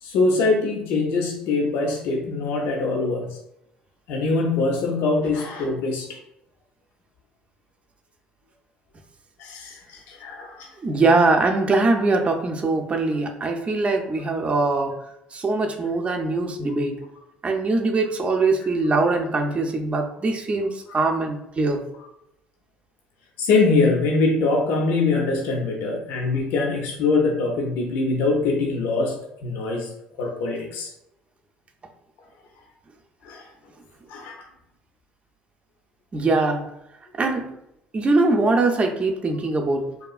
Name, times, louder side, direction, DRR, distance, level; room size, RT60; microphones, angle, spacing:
voice 1, 0.0-3.3 4.1-6.1 9.4-10.7 23.4-29.2 29.4-29.9 30.2-30.9 33.2-33.4 34.1-34.4, left 3 dB, 75° left, 0 dB, 0.5 m, -23 dB
voice 2, 10.8-15.0 15.3-17.0 17.4-21.8 36.1-36.7 37.2-37.5 37.9-39.9, right 3 dB, 30° right, 4 dB, 0.5 m, -22 dB
2.8 x 2.3 x 2.3 m, 0.82 s
supercardioid pair, 75°, 4 cm